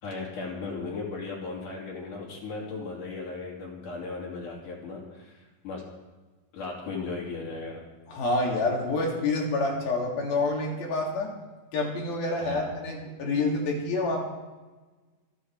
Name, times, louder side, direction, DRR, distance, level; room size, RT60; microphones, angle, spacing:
voice 1, 0.0-5.8 6.5-7.8 12.4-12.7, left 3 dB, 60° left, -2 dB, 4.3 m, -36 dB
voice 2, 8.1-11.3 11.7-14.2, left 2 dB, 85° left, -1 dB, 4.9 m, -27 dB
26.0 x 10.0 x 4.9 m, 1.2 s
omnidirectional pair, 4.1 m